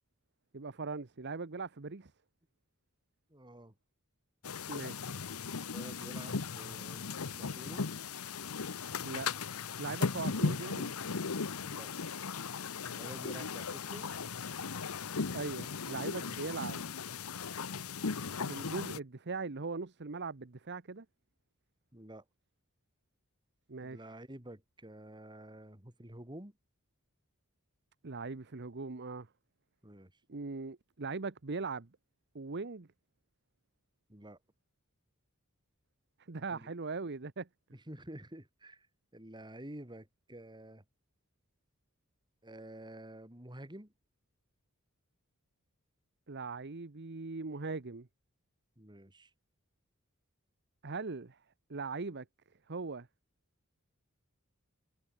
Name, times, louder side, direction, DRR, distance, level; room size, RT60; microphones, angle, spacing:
voice 1, 0.5-2.1 4.7-5.1 9.0-9.3 9.8-10.9 15.3-16.8 18.4-21.0 23.7-24.0 28.0-29.3 30.3-31.9 32.3-32.9 36.3-37.5 46.3-48.1 50.8-51.4 51.7-52.2 52.7-53.1, right 4 dB, 55° right, 1.0 m, -40 dB
voice 2, 3.3-3.7 5.7-7.9 11.6-11.9 12.9-14.1 21.9-22.2 23.8-26.5 29.8-30.1 34.1-34.4 36.5-36.7 37.7-38.9 39.1-40.8 42.4-43.9 48.8-49.3, right 1 dB, 20° right, 3.9 m, -49 dB
sound 1, 4.4-19.0, left 5 dB, 90° left, 1.0 m, -37 dB
head